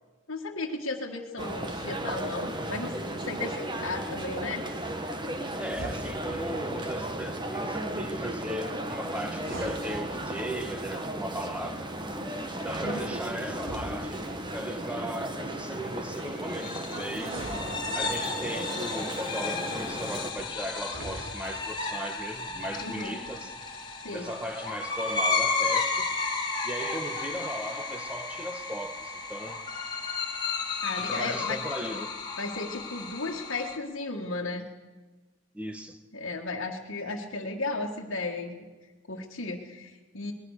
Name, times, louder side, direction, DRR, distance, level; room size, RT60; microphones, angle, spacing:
voice 1, 0.3-4.6 12.8-13.1 17.4-17.6 22.8-23.2 24.0-24.3 30.8-31.6 32.4-34.7 36.1-38.6 39.1-40.3, left 3 dB, 65° left, -1 dB, 1.7 m, -35 dB
sound 1, 1.4-20.3, right 1 dB, 20° right, 1.6 m, -35 dB
voice 2, 5.6-11.9 12.6-17.4 17.9-23.5 24.1-26.1 26.6-29.6 31.0-32.2 35.5-36.0, right 1 dB, 5° right, 7 dB, 1.4 m, -37 dB
sound 2, 5.6-6.6 9.3-10.6 13.5-14.7 17.2-18.4 20.8-21.8, right 1 dB, 65° right, 3.0 m, -42 dB
sound 3, 16.5-33.8, left 4 dB, 20° left, 2.7 m, -33 dB
27.5 x 20.5 x 6.6 m, 1.3 s
head